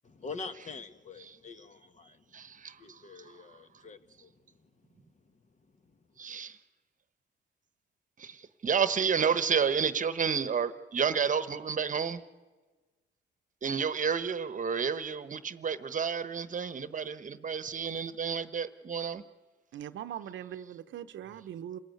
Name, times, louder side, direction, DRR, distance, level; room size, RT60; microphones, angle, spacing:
voice 1, 0.0-2.2 2.8-4.3 4.6-4.7, left 4 dB, 35° left, 1.4 m, -45 dB
voice 2, 2.3-2.7 6.2-6.6 8.2-12.2 13.6-19.2, right 6 dB, 40° right, 1.1 m, -30 dB
voice 3, 19.7-21.8, right 10 dB, 70° right, 0.9 m, -41 dB
27.5 x 16.5 x 9.3 m
cardioid pair, 90°, 20 cm